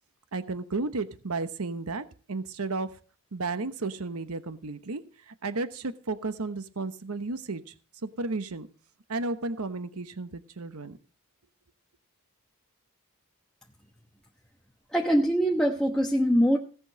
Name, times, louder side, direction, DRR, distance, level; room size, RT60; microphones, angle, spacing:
voice 1, 0.3-3.0 3.3-7.7 8.0-8.7 9.1-11.0, right 3 dB, 80° right, 12 dB, 1.0 m, -33 dB
voice 2, 14.9-16.6, equal, 5° left, -1 dB, 1.1 m, -23 dB
17.0 x 6.2 x 6.2 m, 0.39 s
head